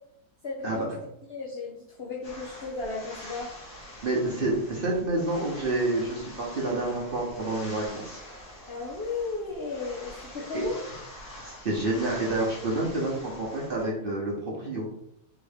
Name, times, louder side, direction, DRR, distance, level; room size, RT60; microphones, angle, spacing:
voice 1, 0.4-0.9 1.3-3.5 8.7-10.8, left 3 dB, 50° left, -3 dB, 0.8 m, -34 dB
sound 1, 2.2-13.8, left 1 dB, 80° left, 2.1 m, -45 dB
voice 2, 4.0-8.2 10.4-10.6 11.4-14.9, right 2 dB, 40° right, -3 dB, 1.0 m, -29 dB
4.6 x 3.0 x 3.5 m, 0.76 s
omnidirectional pair, 1.6 m